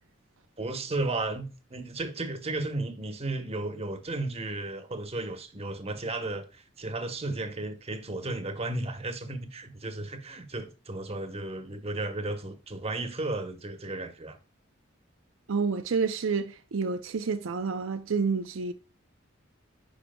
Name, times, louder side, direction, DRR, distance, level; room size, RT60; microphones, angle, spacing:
voice 1, 0.6-14.4, right 2 dB, 30° right, 1.0 m, -34 dB
voice 2, 15.5-18.7, right 5 dB, 80° right, 0.5 m, -29 dB
10.5 x 4.8 x 2.2 m
head